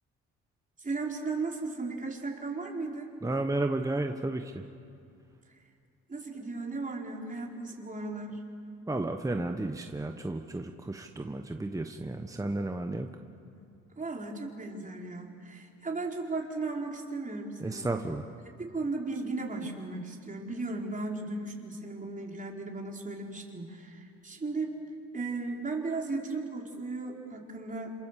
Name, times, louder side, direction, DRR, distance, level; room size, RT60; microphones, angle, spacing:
voice 1, 0.8-3.1 6.1-8.4 14.0-17.9 18.6-24.8 25.1-27.9, right 3 dB, 25° right, 0 dB, 4.4 m, -36 dB
voice 2, 3.2-4.7 8.9-13.1 17.6-18.3, right 2 dB, 10° right, 5 dB, 1.2 m, -32 dB
28.0 x 27.0 x 7.6 m, 2.4 s
cardioid pair, 90°, 30 cm